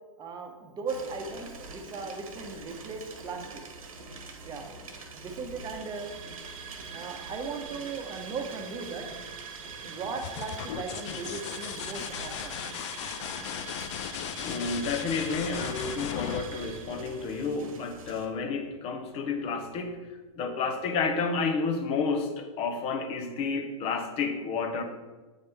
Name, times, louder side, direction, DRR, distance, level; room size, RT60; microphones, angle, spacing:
voice 1, 0.2-3.6 4.4-4.7 5.1-6.1 6.9-9.1 9.9-12.6, right 4 dB, 25° right, 4 dB, 1.0 m, -37 dB
sound 1, 0.9-18.3, right 3 dB, 85° right, 1.3 m, -46 dB
sound 2, 5.6-17.4, right 6 dB, 70° right, 1.2 m, -45 dB
sound 3, 10.0-17.6 19.4-20.0, left 10 dB, 55° left, 0.4 m, -37 dB
voice 2, 14.4-20.0 20.4-24.8, left 4 dB, 35° left, 7 dB, 0.9 m, -30 dB
8.1 x 5.2 x 3.4 m, 1.3 s
hypercardioid pair, 125°, 17 cm